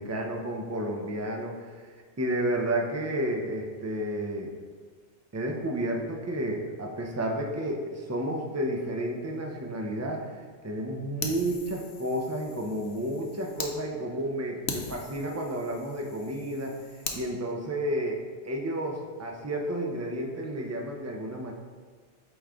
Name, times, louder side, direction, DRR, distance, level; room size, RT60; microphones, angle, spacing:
voice 1, 0.0-1.7 2.2-4.5 5.3-10.3 10.6-16.8 17.1-21.5, right 1 dB, 20° right, 1 dB, 0.4 m, -31 dB
Fire, 11.2-13.7 14.2-14.3 14.7-17.2, left 5 dB, 75° left, 1.0 m, -40 dB
8.4 x 3.1 x 3.6 m, 1.5 s
omnidirectional pair, 1.2 m